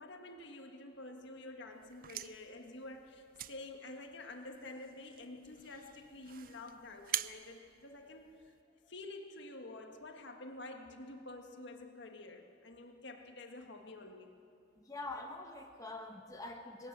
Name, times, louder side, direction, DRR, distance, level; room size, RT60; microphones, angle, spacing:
voice 1, 0.0-8.5 8.9-14.3, left 2 dB, 65° left, 4 dB, 1.7 m, -49 dB
sound 1, 1.8-8.6, right 13 dB, 50° right, 0.4 m, -45 dB
voice 2, 14.8-16.9, left 2 dB, 20° left, 2 dB, 1.1 m, -45 dB
20.0 x 17.5 x 7.5 m, 2.5 s
head